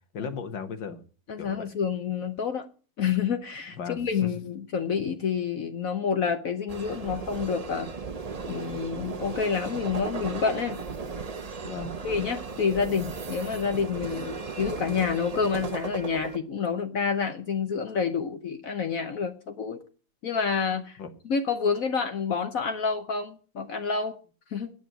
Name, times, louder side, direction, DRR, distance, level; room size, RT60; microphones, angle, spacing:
voice 1, 0.1-1.0 1.4-1.7 3.8-4.3 11.6-11.9 14.1-14.2 21.0-21.1, left 6 dB, 85° left, 2.0 m, -36 dB
voice 2, 1.3-2.7 3.0-7.9 8.5-10.8 12.0-19.8 20.2-21.0 21.2-24.2 24.5-24.7, left 6 dB, 55° left, 1.2 m, -28 dB
sound 1, 6.7-16.4, right 4 dB, 40° right, 0.5 m, -36 dB
9.3 x 8.3 x 8.8 m
omnidirectional pair, 1.9 m